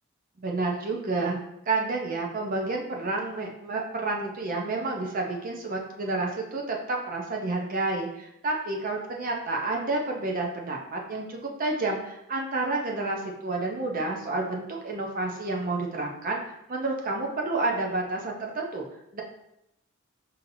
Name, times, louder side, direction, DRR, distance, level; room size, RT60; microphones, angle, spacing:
voice 1, 0.4-1.4 1.7-16.4 16.7-18.9 19.1-19.2, right 2 dB, 45° right, 0 dB, 0.6 m, -30 dB
5.5 x 2.7 x 2.6 m, 0.82 s
head